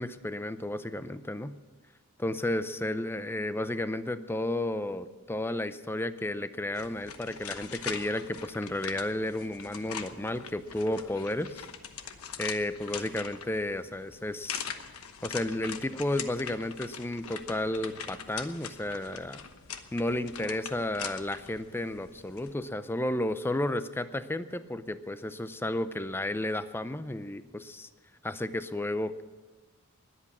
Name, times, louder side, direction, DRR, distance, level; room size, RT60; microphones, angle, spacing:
voice 1, 0.0-1.6 2.2-11.6 12.4-14.7 15.2-19.4 19.9-27.9 28.2-29.2, left 1 dB, 10° left, 12 dB, 0.5 m, -32 dB
sound 1, 6.7-22.5, left 7 dB, 75° left, 1.1 m, -42 dB
20.5 x 8.4 x 7.3 m, 1.3 s
head